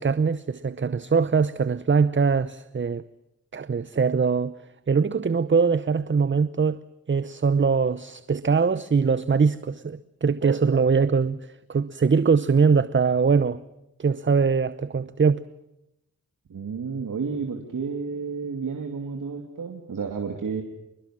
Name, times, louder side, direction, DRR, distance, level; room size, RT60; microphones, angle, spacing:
voice 1, 0.0-3.0 3.5-4.5 4.9-6.8 7.1-13.6 14.0-15.4, right 5 dB, 35° right, 0.8 m, -22 dB
voice 2, 16.5-20.6, right 5 dB, 75° right, 2.7 m, -31 dB
27.0 x 21.5 x 7.6 m
cardioid pair, 60°, 32 cm